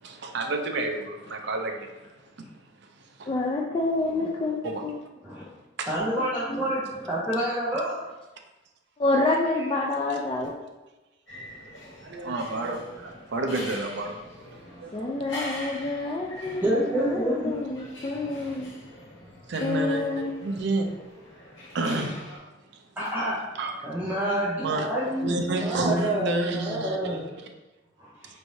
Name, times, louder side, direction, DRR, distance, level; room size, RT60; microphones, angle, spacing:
voice 1, 0.0-1.9 4.6-4.8 5.8-5.9 6.7-6.8 12.0-14.1 14.8-15.4 19.5-20.1 20.4-20.9 21.7-22.3 23.6-23.9 24.6-24.9 25.2-27.3, right 2 dB, 65° right, 3 dB, 0.5 m, -29 dB
voice 2, 3.3-4.9 6.5-6.6 9.0-10.6 14.9-18.7 19.6-20.2, left 2 dB, 25° left, -2 dB, 0.4 m, -28 dB
voice 3, 5.9-8.1 16.6-17.6 23.0-23.6 23.8-27.2 28.0-28.1, right 1 dB, 10° right, -10 dB, 0.7 m, -28 dB
sound 1, 11.3-22.4, left 1 dB, 65° left, 1.3 m, -43 dB
4.3 x 3.2 x 2.7 m, 1.1 s
head